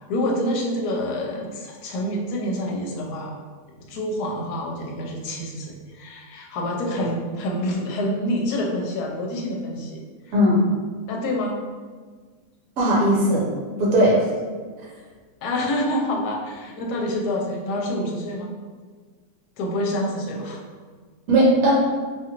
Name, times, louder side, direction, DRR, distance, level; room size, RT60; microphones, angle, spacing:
voice 1, 0.1-3.3 3.9-10.0 11.1-11.6 14.1-14.2 15.4-18.5 19.6-20.6, left 1 dB, 75° left, -1 dB, 1.1 m, -27 dB
voice 2, 12.8-13.5 13.8-14.2 21.3-21.7, right 1 dB, 65° right, -4 dB, 1.1 m, -17 dB
2.8 x 2.4 x 2.8 m, 1.5 s
omnidirectional pair, 1.7 m